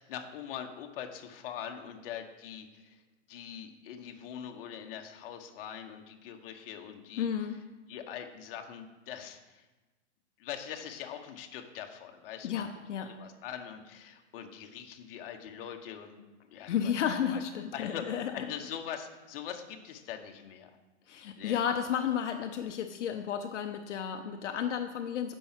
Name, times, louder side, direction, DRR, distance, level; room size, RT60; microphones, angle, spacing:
voice 1, 0.1-3.0 3.3-7.3 7.9-9.6 10.4-12.6 13.1-16.2 16.5-16.9 17.3-17.4 17.7-20.8 21.4-21.6, left 9 dB, 50° left, 4 dB, 1.1 m, -42 dB
voice 2, 7.2-7.6 12.4-13.1 16.7-18.5 21.1-25.3, left 8 dB, 80° left, 6 dB, 0.8 m, -32 dB
6.9 x 5.5 x 7.3 m, 1.2 s
hypercardioid pair, 150°, 36 cm